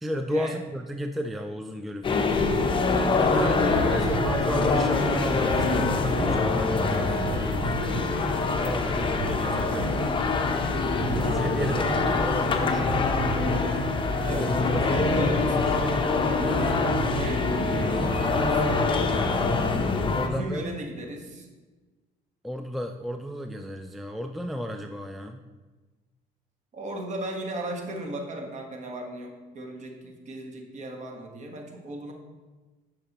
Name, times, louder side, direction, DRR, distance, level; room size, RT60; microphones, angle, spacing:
voice 1, 0.0-2.3 3.1-8.1 8.6-10.0 11.0-13.1 14.3-16.3 20.1-20.6 22.4-25.4, equal, ahead, 6 dB, 0.3 m, -33 dB
sound 1, 2.0-20.3, left 4 dB, 30° left, 0.8 m, -25 dB
sound 2, 2.4-18.9, right 8 dB, 90° right, 0.5 m, -36 dB
voice 2, 3.3-4.2 8.2-8.6 14.2-14.5 14.9-16.0 17.1-17.9 18.2-18.6 20.2-21.5 26.7-32.1, right 1 dB, 45° right, 2 dB, 1.4 m, -36 dB
10.0 x 5.9 x 3.0 m, 1.3 s
cardioid pair, 110°, 17 cm